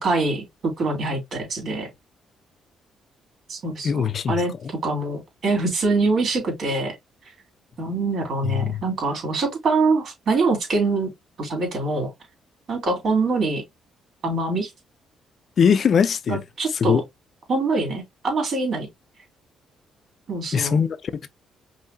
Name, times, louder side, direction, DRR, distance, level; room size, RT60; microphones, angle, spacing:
voice 1, 0.0-1.9 3.5-7.0 7.8-11.1 11.4-12.1 12.7-13.6 14.2-14.7 16.3-17.0 17.5-18.9 20.3-20.8, right 3 dB, 60° right, 3.0 m, -24 dB
voice 2, 3.8-4.4 8.4-8.8 15.6-16.4 16.8-17.0 20.5-21.3, left 7 dB, 55° left, 0.5 m, -21 dB
5.5 x 2.7 x 2.6 m
cardioid pair, 90°, 0 cm